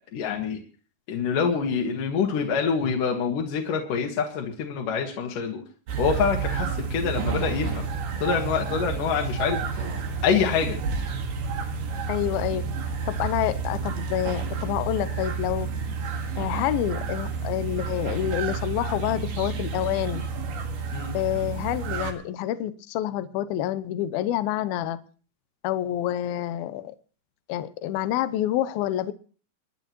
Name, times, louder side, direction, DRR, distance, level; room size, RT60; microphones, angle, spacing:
voice 1, 0.1-0.6 1.1-5.6 6.0-7.8 8.2-9.9 10.2-10.8 20.9-21.1, left 6 dB, 60° left, 0 dB, 3.1 m, -26 dB
sound 1, 5.9-22.1, right 5 dB, 60° right, 3.3 m, -30 dB
voice 2, 12.1-12.7 13.1-15.7 16.4-20.2 21.1-25.0 25.6-27.0 27.5-29.1, left 12 dB, 75° left, 13 dB, 2.5 m, -28 dB
29.0 x 10.5 x 3.0 m, 0.40 s
omnidirectional pair, 4.6 m